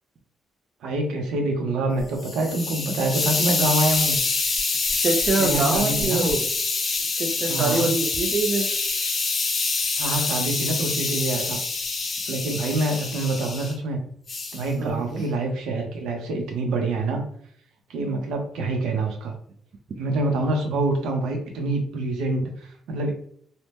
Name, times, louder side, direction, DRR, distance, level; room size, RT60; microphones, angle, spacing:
voice 1, 0.8-4.2 5.4-6.4 7.5-7.9 10.0-11.6 12.3-14.0 14.5-17.2 17.9-19.3 20.0-23.1, right 2 dB, 85° right, 3 dB, 0.7 m, -26 dB
Hiss, 2.0-13.7 14.3-14.7, left 3 dB, 35° left, 0.5 m, -26 dB
voice 2, 5.0-6.5 7.1-8.7 14.8-15.2, right 3 dB, 45° right, 3 dB, 0.4 m, -25 dB
2.8 x 2.0 x 3.3 m, 0.63 s
cardioid pair, 150°, 0 cm